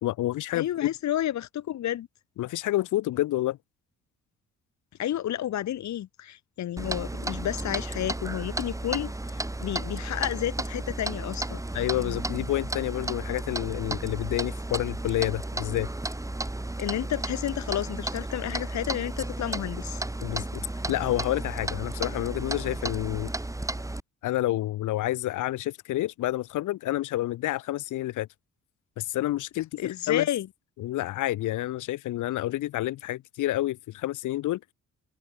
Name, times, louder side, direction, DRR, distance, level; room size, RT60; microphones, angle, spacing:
voice 1, 0.0-0.9 2.4-3.6 11.7-15.9 20.2-23.3 24.2-28.3 29.0-29.8 30.1-30.3 30.8-34.7, left 15 dB, 85° left, 1.6 m, -29 dB
voice 2, 0.5-2.1 5.0-11.6 16.8-20.0 29.8-30.5, left 12 dB, 65° left, 1.7 m, -31 dB
Clock, 6.8-24.0, right 2 dB, 10° right, 2.8 m, -33 dB
cardioid pair, 90°, 30 cm